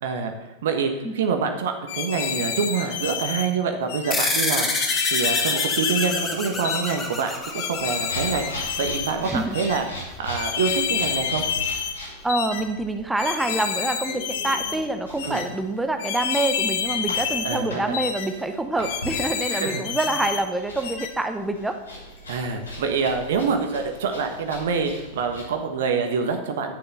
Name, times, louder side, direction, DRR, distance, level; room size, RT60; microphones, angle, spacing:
voice 1, 0.0-0.3 0.6-9.8 10.2-11.4 15.2-15.4 17.4-18.0 19.5-19.8 22.3-26.8, right 5 dB, 55° right, 5 dB, 1.3 m, -26 dB
sound 1, 1.9-3.5 3.9-4.2 4.7-6.3 6.6-7.0 7.5-9.1 9.5-9.8 10.3-12.0 12.3-12.6 13.2-14.8 15.2-15.5 16.0-17.6 17.9-18.3 18.8-20.4 20.8-21.1, left 7 dB, 55° left, 1.3 m, -28 dB
sound 2, 4.1-9.0, left 2 dB, 15° left, 1.8 m, -27 dB
sound 3, 5.8-25.4, left 1 dB, 75° left, 3.3 m, -40 dB
voice 2, 9.2-9.5 12.2-21.8, right 2 dB, 5° right, 7 dB, 0.8 m, -26 dB
10.5 x 6.8 x 6.9 m, 1.1 s
figure-of-eight pair, 90°, 0 cm